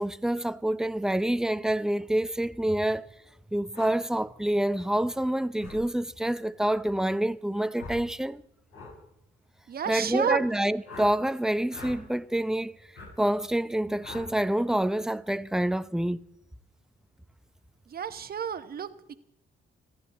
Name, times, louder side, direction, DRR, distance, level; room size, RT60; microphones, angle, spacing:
voice 1, 0.0-3.1 3.5-8.4 9.9-12.8 13.2-16.2, right 1 dB, 5° right, 0.6 m, -27 dB
sound 1, 3.7-3.9 5.6-5.8 7.7-8.1 8.7-8.9 10.8-11.1 11.7-12.0 12.9-13.1 14.0-14.3, left 3 dB, 80° left, 6.1 m, -42 dB
voice 2, 9.7-10.6 17.9-19.1, right 7 dB, 50° right, 1.1 m, -31 dB
29.5 x 10.5 x 4.2 m
cardioid pair, 90°, 20 cm